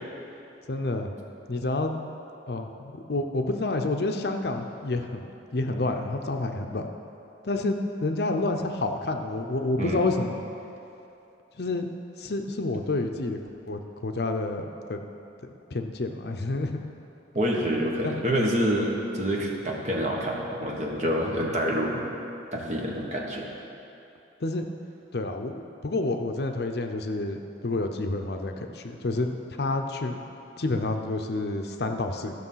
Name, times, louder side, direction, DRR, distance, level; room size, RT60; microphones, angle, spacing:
voice 1, 0.7-1.1 1.5-2.0 2.5-6.9 7.4-10.4 11.6-11.9 12.2-13.4 13.7-15.0 15.4-16.8 18.0-18.3 24.4-24.7 25.1-30.2 30.6-32.3, left 2 dB, 60° left, 5 dB, 0.6 m, -29 dB
voice 2, 17.3-22.0 22.5-23.5, equal, 40° right, -2 dB, 1.4 m, -27 dB
13.5 x 6.0 x 5.7 m, 2.9 s
head